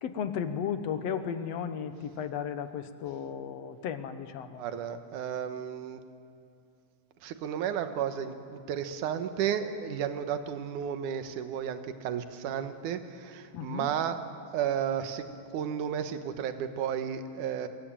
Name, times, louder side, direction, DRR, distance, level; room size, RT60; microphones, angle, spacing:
voice 1, 0.0-4.6 13.5-13.9, left 8 dB, 65° left, 10 dB, 2.0 m, -34 dB
voice 2, 4.6-6.0 7.2-14.2 14.5-15.3 15.5-17.7, right 8 dB, 75° right, 8 dB, 2.7 m, -33 dB
25.0 x 22.0 x 8.9 m, 2.5 s
omnidirectional pair, 3.7 m